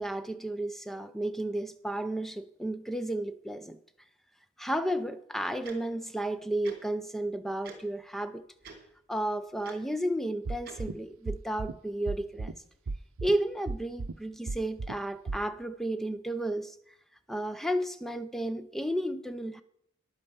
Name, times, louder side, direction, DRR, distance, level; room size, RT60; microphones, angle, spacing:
voice 1, 0.0-3.8 4.6-8.5 9.1-12.5 13.2-16.8 17.3-19.6, right 1 dB, ahead, 0.5 m, -33 dB
Tick-tock, 5.6-5.8 6.6-6.8 7.6-7.8 8.6-8.8 9.6-9.8 10.6-10.8, right 4 dB, 45° right, 2.9 m, -45 dB
sound 1, 10.4-10.9 11.3-11.7 12.1-12.5 12.9-13.3 13.7-14.1 14.5-14.9 15.3-15.4, right 3 dB, 85° right, 0.6 m, -34 dB
11.0 x 9.0 x 6.9 m
head